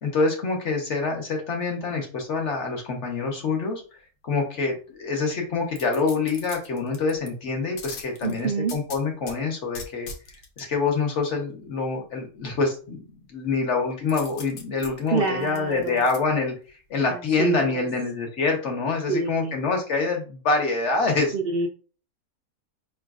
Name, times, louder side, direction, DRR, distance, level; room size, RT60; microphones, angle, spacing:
voice 1, 0.0-3.8 4.2-10.1 10.6-13.0 13.3-16.5 16.9-21.3, left 4 dB, 55° left, 2 dB, 1.3 m, -26 dB
sound 1, 5.7-7.3 7.8-9.4 9.7-10.6 14.1-16.2 16.6-16.7, left 4 dB, 80° left, 1.2 m, -41 dB
voice 2, 8.2-8.8 15.1-16.0 17.1-17.9 19.1-19.5 21.3-21.7, right 4 dB, 75° right, 4 dB, 0.5 m, -27 dB
5.0 x 3.2 x 2.4 m, 0.38 s
omnidirectional pair, 1.5 m